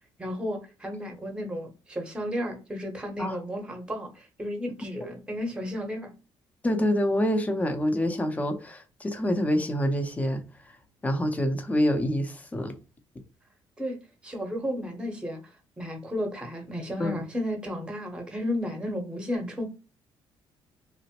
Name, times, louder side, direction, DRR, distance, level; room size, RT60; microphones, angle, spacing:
voice 1, 0.2-6.1 13.8-15.4 15.8-19.6, equal, 10° right, 0.8 m, -33 dB
voice 2, 6.6-10.4 11.0-12.7 17.0-17.2, equal, 15° left, 0.6 m, -26 dB
3.0 x 2.0 x 2.8 m
cardioid pair, 120°, 9 cm